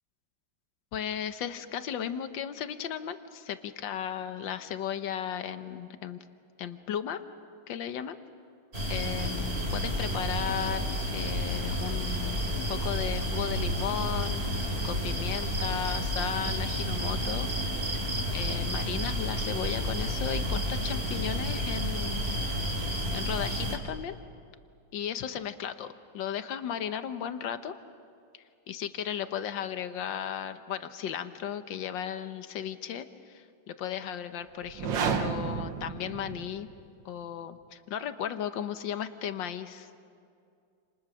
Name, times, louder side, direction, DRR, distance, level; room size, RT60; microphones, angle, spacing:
voice 1, 0.9-6.2 6.6-7.2 7.7-8.2 8.9-10.9 11.1-17.5 18.3-22.4 23.1-24.1 24.9-27.7 28.7-36.7 37.1-39.9, left 9 dB, 70° left, 9 dB, 1.7 m, -35 dB
sound 1, 8.7-23.8, equal, 30° right, 3.8 m, -31 dB
sound 2, 34.6-36.8, right 6 dB, 70° right, 1.9 m, -31 dB
29.5 x 28.5 x 6.3 m, 2.4 s
omnidirectional pair, 2.2 m